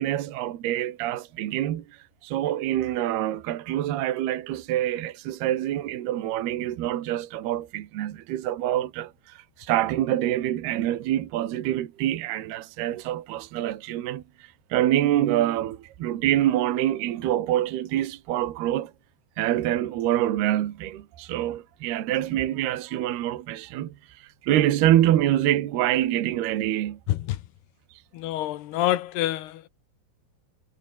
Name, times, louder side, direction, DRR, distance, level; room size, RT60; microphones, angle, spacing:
voice 1, 0.0-18.9 19.4-27.0 27.9-28.0, right 13 dB, 70° right, 3.5 m, -26 dB
voice 2, 28.1-29.7, left 14 dB, 75° left, 3.0 m, -27 dB
omnidirectional pair, 5.0 m